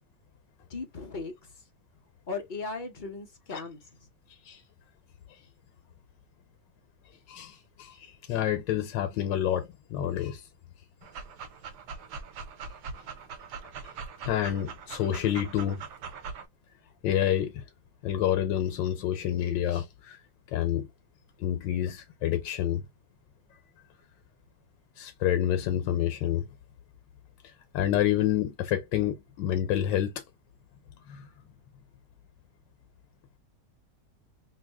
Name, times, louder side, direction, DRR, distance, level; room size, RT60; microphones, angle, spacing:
voice 1, 0.7-1.3 2.3-3.8, left 4 dB, 40° left, 0.7 m, -37 dB
voice 2, 7.3-10.4 13.8-13.9 14.3-15.8 17.0-17.6 18.0-20.2 20.5-20.9 21.4-22.8 25.0-26.5 27.7-30.1 31.1-31.3, left 11 dB, 90° left, 1.3 m, -28 dB
Dog, 11.0-16.4, right 5 dB, 70° right, 1.2 m, -42 dB
3.1 x 2.6 x 3.4 m
omnidirectional pair, 1.9 m